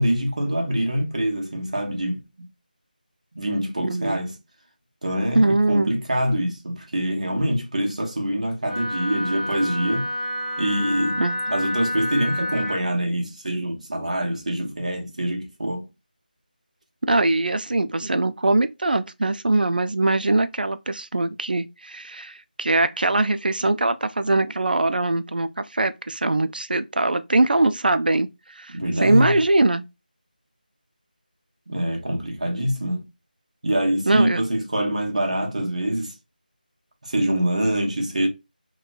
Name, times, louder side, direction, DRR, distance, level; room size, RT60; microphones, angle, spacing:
voice 1, 0.0-2.2 3.4-4.4 5.0-10.1 10.6-15.9 28.7-29.4 31.7-33.0 33.6-36.1 37.0-38.3, right 1 dB, 45° right, 0.7 m, -25 dB
voice 2, 3.8-4.2 5.3-5.9 11.2-11.4 17.0-29.9 34.1-34.4, right 2 dB, 70° right, 0.3 m, -22 dB
Wind instrument woodwind instrument, 8.6-12.8, left 1 dB, ahead, 1.0 m, -29 dB
3.0 x 2.2 x 2.4 m
figure-of-eight pair, 180°, 5 cm